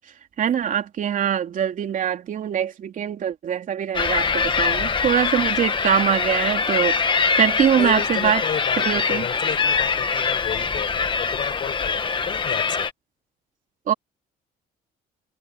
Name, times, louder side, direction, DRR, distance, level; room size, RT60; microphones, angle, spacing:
voice 1, 0.4-8.5 8.8-9.3 13.9-14.0, right 9 dB, 50° right, 3.6 m, -23 dB
sound 1, 3.9-12.9, left 5 dB, 30° left, 1.8 m, -23 dB
voice 2, 7.8-12.9, left 9 dB, 50° left, 8.0 m, -32 dB
cardioid pair, 110°, 17 cm